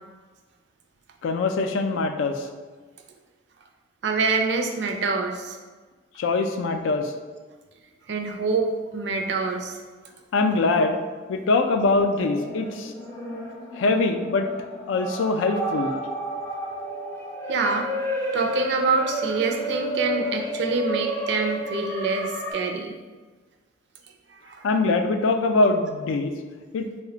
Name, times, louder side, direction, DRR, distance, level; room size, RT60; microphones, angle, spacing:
voice 1, 1.2-2.5 6.2-7.1 10.3-11.0 11.3-12.9 13.8-14.5 14.9-15.9 24.6-26.3 26.7-26.9, left 3 dB, 85° left, 6 dB, 0.3 m, -23 dB
voice 2, 4.0-5.6 8.1-9.8 17.5-17.9 18.3-22.9 24.3-24.7, right 4 dB, 65° right, 3 dB, 0.4 m, -26 dB
sound 1, 12.2-22.5, right 1 dB, 15° left, 0.4 m, -31 dB
3.2 x 2.1 x 3.8 m, 1.4 s
head